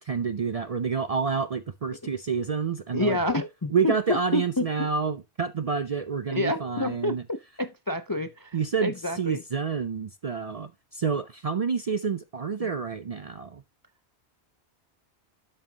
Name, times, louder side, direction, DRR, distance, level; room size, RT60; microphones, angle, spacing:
voice 1, 0.0-3.2 3.7-7.2 8.5-13.6, right 5 dB, 50° right, 0.5 m, -28 dB
voice 2, 2.9-4.7 6.3-9.4 12.6-12.7, left 2 dB, 30° left, 0.4 m, -29 dB
12.5 x 5.6 x 2.8 m
omnidirectional pair, 1.1 m